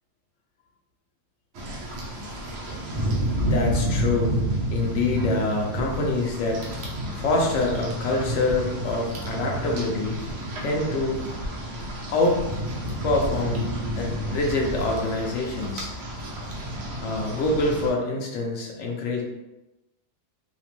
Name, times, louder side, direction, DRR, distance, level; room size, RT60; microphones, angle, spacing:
Rain, 1.5-17.9, right 1 dB, 85° right, 0.5 m, -30 dB
voice 1, 3.4-4.4 4.7-6.7 7.1-10.2 10.6-11.2 12.1-12.4 13.0-15.9 17.0-19.2, left 2 dB, 70° left, 0 dB, 0.7 m, -25 dB
2.8 x 2.0 x 2.9 m, 0.96 s
omnidirectional pair, 1.8 m